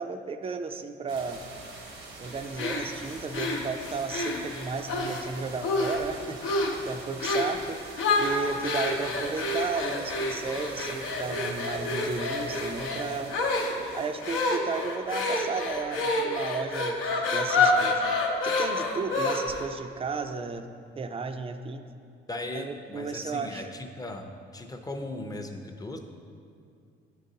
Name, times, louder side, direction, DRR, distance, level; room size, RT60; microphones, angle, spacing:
voice 1, 0.0-1.4 2.2-7.8 8.2-13.3 13.9-18.0 18.4-20.7 21.0-21.8 22.5-23.7, right 4 dB, 30° right, 8 dB, 0.4 m, -34 dB
sound 1, 1.1-15.3, right 2 dB, 80° right, 0.9 m, -45 dB
sound 2, 2.6-5.2 5.6-6.1 6.4-6.8 7.2-7.6 8.0-19.7, left 2 dB, 85° left, 0.7 m, -28 dB
voice 2, 22.3-24.3 24.5-26.0, left 2 dB, 20° left, 4 dB, 0.5 m, -37 dB
9.5 x 3.9 x 2.7 m, 2.4 s
cardioid pair, 90°, 20 cm